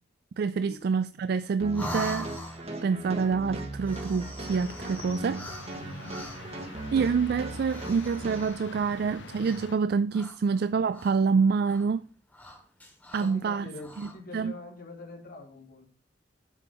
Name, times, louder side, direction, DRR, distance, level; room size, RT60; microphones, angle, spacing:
voice 1, 0.4-2.3 2.8-5.4 6.9-12.0 13.1-13.7 14.0-14.1 14.3-14.5, right 5 dB, 55° right, 0.3 m, -27 dB
sound 1, 1.6-8.5, right 2 dB, 35° right, 1.4 m, -38 dB
sound 2, 1.7-2.9 3.8-6.6 7.6-8.7 9.4-9.8 10.1-11.3 11.6-11.9 12.3-13.4 13.7-14.1, left 1 dB, 10° left, 2.6 m, -43 dB
sound 3, 4.4-9.8, left 3 dB, 85° left, 1.0 m, -45 dB
voice 2, 5.8-6.1 13.1-15.9, left 2 dB, 55° left, 2.3 m, -44 dB
8.2 x 5.4 x 5.2 m
head